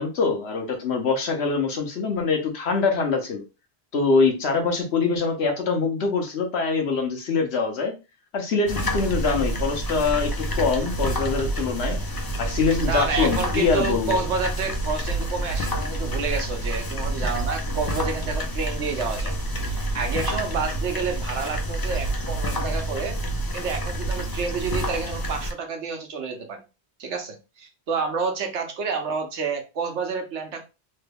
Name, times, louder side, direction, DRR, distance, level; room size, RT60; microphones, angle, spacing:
voice 1, 0.0-3.4 3.9-7.9 8.3-12.0 12.4-14.2, left 4 dB, 70° left, 3 dB, 1.1 m, -24 dB
sound 1, 8.7-25.5, right 1 dB, 35° left, 0.3 m, -28 dB
voice 2, 12.8-19.3 19.7-23.2 23.5-26.6 27.0-30.6, right 5 dB, 85° right, 4 dB, 1.1 m, -29 dB
3.3 x 2.3 x 3.3 m, 0.29 s
omnidirectional pair, 1.1 m